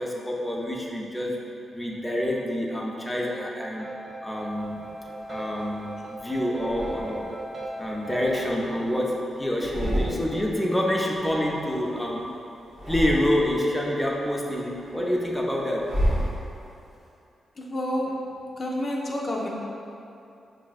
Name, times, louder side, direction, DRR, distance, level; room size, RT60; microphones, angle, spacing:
voice 1, 0.0-1.4 1.7-3.9 4.2-4.9 5.3-7.3 7.8-12.3 12.9-15.9, left 1 dB, 5° left, -3 dB, 0.6 m, -27 dB
sound 1, 3.1-8.5, right 1 dB, 55° right, 0.7 m, -38 dB
sound 2, 4.6-5.8 6.5-7.5 7.9-9.2 9.5-10.6 10.9-12.3 12.7-13.7 14.2-16.9, equal, 75° right, 1.0 m, -32 dB
voice 2, 17.6-18.1 18.6-19.5, left 1 dB, 50° left, -3 dB, 0.5 m, -29 dB
4.8 x 2.6 x 2.4 m, 2.7 s
supercardioid pair, 45°, 0 cm